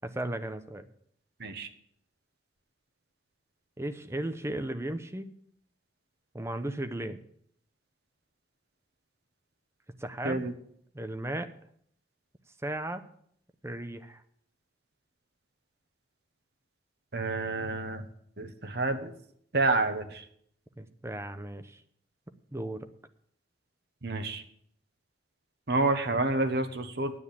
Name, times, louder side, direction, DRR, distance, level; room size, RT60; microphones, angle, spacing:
voice 1, 0.0-0.8 3.8-5.3 6.3-7.2 10.0-10.5 10.9-11.5 12.6-13.0 13.6-14.2 20.8-21.8 22.5-22.9, right 1 dB, 15° right, 9 dB, 0.8 m, -35 dB
voice 2, 17.1-18.0 18.4-19.1 19.5-20.2 24.0-24.4 25.7-27.1, right 2 dB, 60° right, 7 dB, 1.3 m, -28 dB
9.7 x 8.0 x 8.4 m, 0.68 s
head